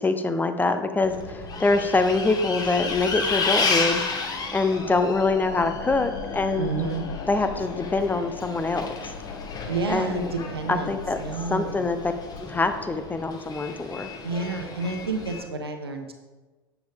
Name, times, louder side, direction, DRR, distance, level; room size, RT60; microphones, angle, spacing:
voice 1, 0.0-4.0 4.5-6.7 7.2-8.9 9.9-10.3 10.7-11.2 11.5-12.1 12.4-14.1, left 3 dB, 15° left, 9 dB, 0.8 m, -24 dB
Bus, 1.0-15.4, left 4 dB, 30° left, 1.5 m, -32 dB
sound 1, 4.4-13.7, left 6 dB, 60° left, 0.8 m, -39 dB
voice 2, 6.6-7.1 9.7-11.9 14.2-16.1, right 4 dB, 85° right, 5 dB, 1.0 m, -30 dB
10.5 x 7.2 x 3.5 m, 1.3 s
figure-of-eight pair, 80°, 13 cm